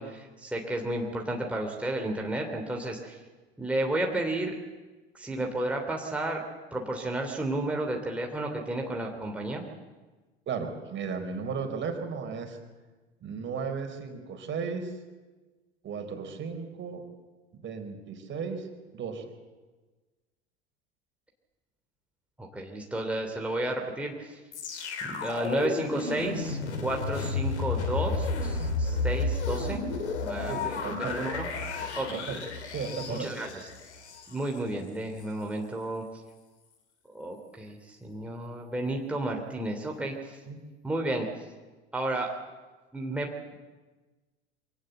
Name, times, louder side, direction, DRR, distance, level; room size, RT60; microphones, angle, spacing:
voice 1, 0.0-3.2 3.6-4.5 5.1-6.4 6.7-9.6 22.4-24.4 25.1-29.8 30.2-31.5 31.8-32.2 33.1-33.5 34.3-36.0 37.1-40.4 40.8-41.3 41.9-42.3 42.9-43.6, right 1 dB, 5° right, 0 dB, 3.0 m, -32 dB
voice 2, 10.5-12.6 13.2-14.9 15.8-17.0 17.6-18.7 18.9-19.3 30.5-31.2 32.1-32.4 32.7-33.3 40.5-40.6, right 5 dB, 35° right, 5 dB, 4.2 m, -35 dB
sound 1, 24.5-34.6 35.2-35.3, left 3 dB, 75° left, 3.2 m, -32 dB
24.5 x 18.0 x 7.9 m, 1.3 s
hypercardioid pair, 80°, 34 cm